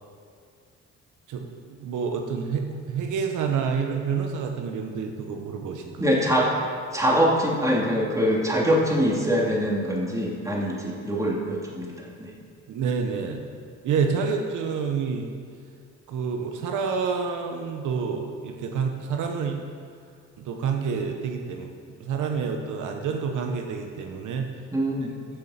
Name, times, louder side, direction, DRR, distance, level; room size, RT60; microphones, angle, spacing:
voice 1, 1.3-6.2 12.7-13.5 13.8-15.3 16.1-19.6 20.4-21.7 22.0-24.5, right 6 dB, 80° right, 3 dB, 1.1 m, -28 dB
voice 2, 6.0-6.5 6.9-12.3 24.7-25.1, equal, 10° right, -3 dB, 2.9 m, -24 dB
14.5 x 6.8 x 5.8 m, 2.2 s
cardioid pair, 90°, 30 cm